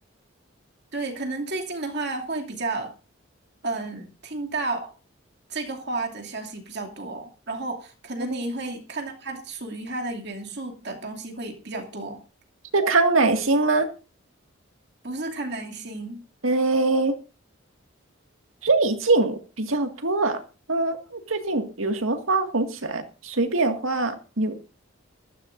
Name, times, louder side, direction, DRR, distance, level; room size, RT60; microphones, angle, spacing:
voice 1, 0.9-2.9 3.6-4.9 5.5-12.2 15.0-16.3, right 2 dB, 55° right, 2 dB, 2.7 m, -32 dB
voice 2, 12.7-13.9 16.4-17.1 18.6-20.4 20.7-24.8, right 3 dB, 90° right, 6 dB, 2.0 m, -23 dB
21.5 x 13.5 x 2.6 m, 0.32 s
head